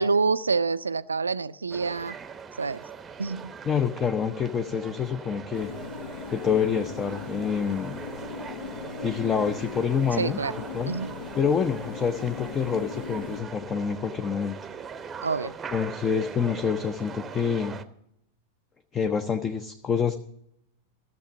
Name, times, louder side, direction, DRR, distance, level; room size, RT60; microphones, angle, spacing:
voice 1, 0.0-2.2 2.6-2.8 3.2-3.5 10.2-10.5 10.9-11.1 15.2-15.5, right 4 dB, 75° right, 15 dB, 0.4 m, -27 dB
sound 1, 1.7-17.8, right 6 dB, 20° right, 0.8 m, -41 dB
voice 2, 3.7-5.7 6.3-8.0 9.0-10.4 10.7-10.9 11.4-14.6 15.7-17.8 18.9-20.2, left 7 dB, 20° left, 8 dB, 0.6 m, -27 dB
sound 2, 5.5-13.4, left 6 dB, 55° left, 0.8 m, -39 dB
14.0 x 6.7 x 8.2 m, 0.74 s
figure-of-eight pair, 90°, 0 cm